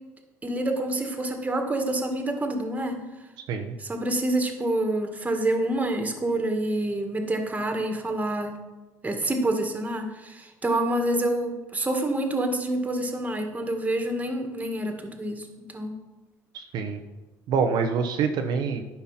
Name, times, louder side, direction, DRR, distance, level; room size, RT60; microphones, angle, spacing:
voice 1, 0.4-3.0 3.8-8.6 9.0-15.5 15.7-15.9, right 1 dB, 20° right, 5 dB, 1.8 m, -27 dB
voice 2, 16.5-17.0 17.5-18.8, right 6 dB, 65° right, 5 dB, 0.8 m, -26 dB
10.5 x 5.7 x 5.8 m, 1.1 s
supercardioid pair, 80°, 8 cm